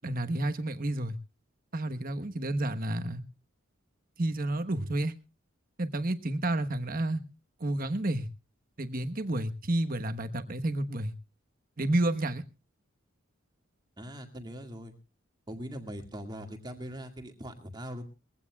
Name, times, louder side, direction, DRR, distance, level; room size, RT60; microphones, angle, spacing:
voice 1, 0.0-1.2 1.7-3.2 4.2-5.1 5.8-7.2 7.6-8.3 8.8-11.1 11.8-12.4, right 1 dB, 45° right, 9 dB, 1.2 m, -30 dB
voice 2, 14.0-14.9 15.5-18.0, equal, 20° right, 4 dB, 2.1 m, -41 dB
21.5 x 16.0 x 2.3 m, 0.30 s
head